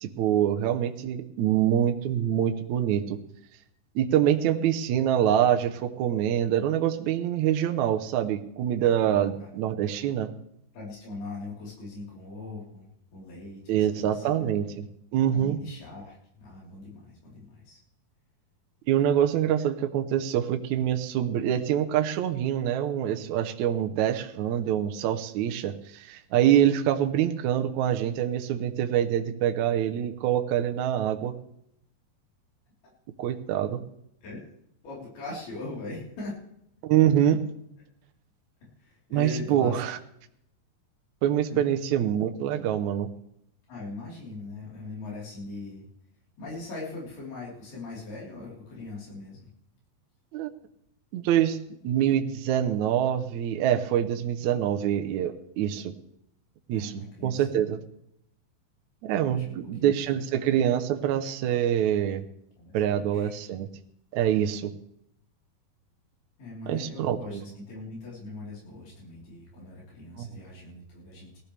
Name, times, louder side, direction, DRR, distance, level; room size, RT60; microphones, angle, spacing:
voice 1, 0.0-3.2 3.9-10.3 13.7-14.9 15.1-15.6 18.9-31.3 33.2-33.8 36.8-37.4 39.1-39.9 41.2-43.1 50.3-50.5 51.1-51.6 51.8-55.9 56.7-57.8 59.0-62.2 62.7-63.7 64.1-64.7 66.7-67.4 70.2-70.3, right 10 dB, 75° right, 6 dB, 1.7 m, -25 dB
voice 2, 9.0-9.5 10.7-14.5 15.3-17.8 32.8-32.9 34.2-34.4 34.8-36.4 38.8-39.8 41.4-41.6 43.7-45.8 46.4-49.5 56.7-57.5 59.2-59.9 62.6-62.7 63.1-63.3 66.4-71.4, left 3 dB, 85° left, -5 dB, 6.0 m, -41 dB
19.0 x 13.5 x 3.4 m, 0.75 s
omnidirectional pair, 4.4 m